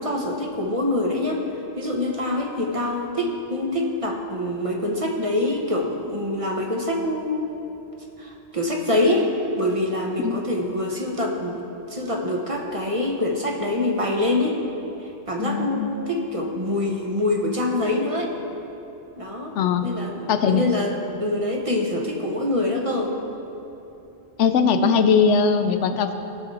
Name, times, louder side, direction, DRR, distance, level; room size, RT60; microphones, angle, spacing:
voice 1, 0.0-1.5 1.8-7.5 8.2-14.6 15.3-18.3 19.2-19.5 19.8-23.1, left 1 dB, 30° right, 0 dB, 1.0 m, -25 dB
voice 2, 15.4-15.9 19.6-19.8 20.3-20.6 24.4-26.1, left 6 dB, 90° left, 8 dB, 1.0 m, -20 dB
17.5 x 6.0 x 4.1 m, 2.9 s
omnidirectional pair, 1.2 m